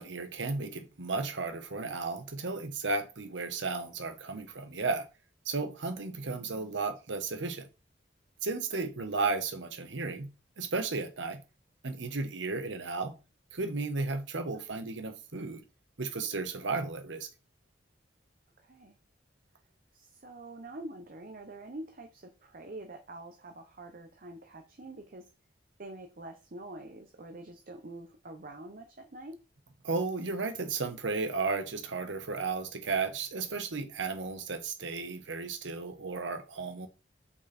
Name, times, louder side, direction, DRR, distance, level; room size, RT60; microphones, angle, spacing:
voice 1, 0.0-5.1 5.4-7.7 8.4-10.3 10.6-11.4 11.8-13.2 13.5-15.6 16.0-17.3 29.8-36.9, right 3 dB, 85° right, 1.1 m, -34 dB
voice 2, 6.0-6.8 14.5-14.9 18.6-19.0 19.9-25.3 25.8-29.4, right 2 dB, 50° right, 0.9 m, -46 dB
5.8 x 4.3 x 4.3 m
head